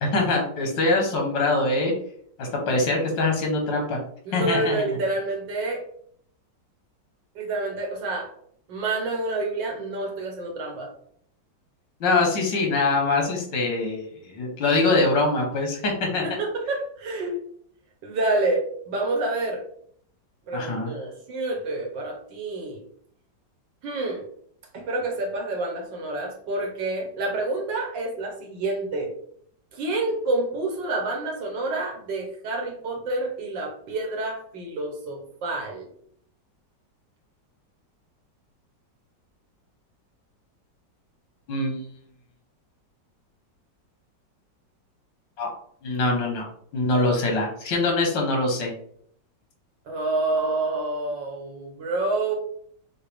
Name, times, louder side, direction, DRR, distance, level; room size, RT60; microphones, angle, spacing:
voice 1, 0.0-1.9 2.4-4.0 4.3-4.8 12.0-16.3 20.5-20.9 41.5-41.8 45.4-45.5 45.8-46.4 46.7-48.7, left 2 dB, 80° left, 1 dB, 1.9 m, -23 dB
voice 2, 4.3-5.8 7.4-8.3 8.7-10.9 16.2-17.4 18.0-19.6 20.5-22.8 23.8-24.2 24.7-29.1 29.7-35.9 49.9-52.3, right 2 dB, 85° right, 1 dB, 1.8 m, -28 dB
6.4 x 2.4 x 3.4 m, 0.63 s
omnidirectional pair, 2.0 m